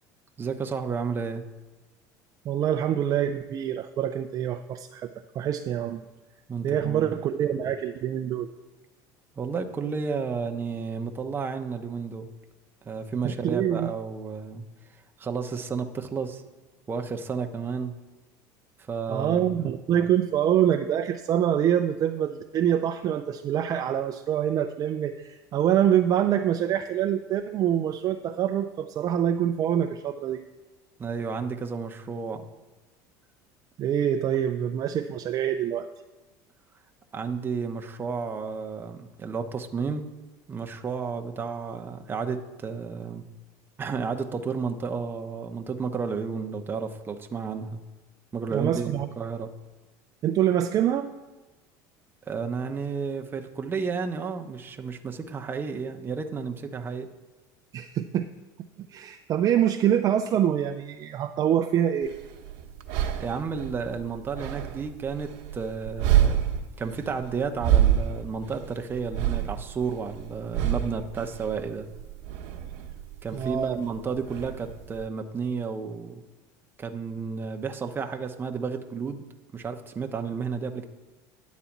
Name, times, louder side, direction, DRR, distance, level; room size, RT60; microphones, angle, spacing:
voice 1, 0.4-1.4 6.5-7.1 9.4-12.3 12.8-14.6 15.2-16.4 16.9-17.9 18.9-19.5 31.0-32.5 37.1-40.0 40.5-43.3 43.8-47.8 48.3-49.5 52.3-57.1 63.2-66.4 66.8-71.9 73.2-76.2 76.8-79.2 79.5-80.8, right 5 dB, 20° right, 4 dB, 0.8 m, -32 dB
voice 2, 2.4-6.0 6.6-8.5 13.2-13.9 19.1-30.4 33.8-35.9 48.5-49.1 50.2-51.1 57.7-58.3 58.8-62.1 73.3-73.8, right 10 dB, 40° right, 7 dB, 0.4 m, -25 dB
sound 1, 62.0-75.1, right 11 dB, 70° right, 1.0 m, -28 dB
10.0 x 4.1 x 7.2 m, 1.2 s
supercardioid pair, 120°, 10 cm